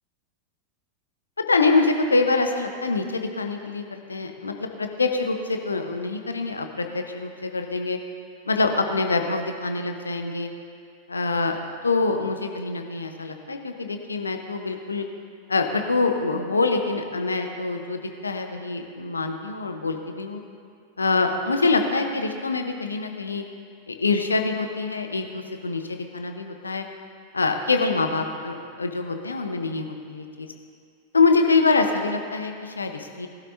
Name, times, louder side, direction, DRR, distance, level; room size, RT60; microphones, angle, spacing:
voice 1, 1.4-8.0 8.5-10.5 11.1-15.1 15.5-20.4 21.0-23.4 23.9-26.8 27.3-30.5 31.1-33.3, left 3 dB, 75° left, 5 dB, 1.0 m, -25 dB
20.0 x 12.0 x 2.8 m, 2.2 s
figure-of-eight pair, 90°, 0 cm